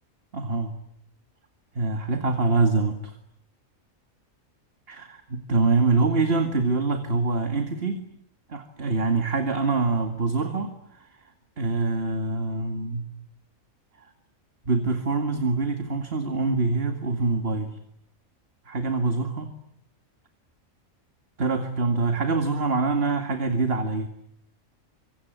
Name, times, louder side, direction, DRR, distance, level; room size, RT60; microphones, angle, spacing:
voice 1, 0.3-0.7 1.8-3.1 4.9-8.0 8.5-11.2 11.6-13.0 14.0-14.1 14.6-17.8 18.7-19.5 21.4-24.1, right 3 dB, 45° right, 6 dB, 2.4 m, -25 dB
26.0 x 24.0 x 9.4 m, 0.71 s
omnidirectional pair, 1.4 m